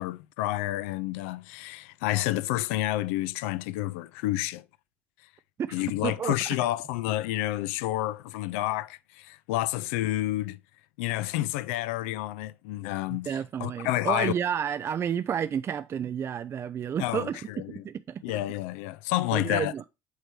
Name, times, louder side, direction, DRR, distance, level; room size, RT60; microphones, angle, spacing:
voice 1, 0.0-4.6 5.7-10.6 11.0-14.3 17.0-17.8 18.2-19.7, left 16 dB, 70° left, 0.4 m, -29 dB
voice 2, 5.6-6.3 13.3-17.4 17.7-18.2 19.3-19.8, right 8 dB, 40° right, 0.4 m, -31 dB
8.1 x 3.2 x 4.6 m
hypercardioid pair, 60°, 7 cm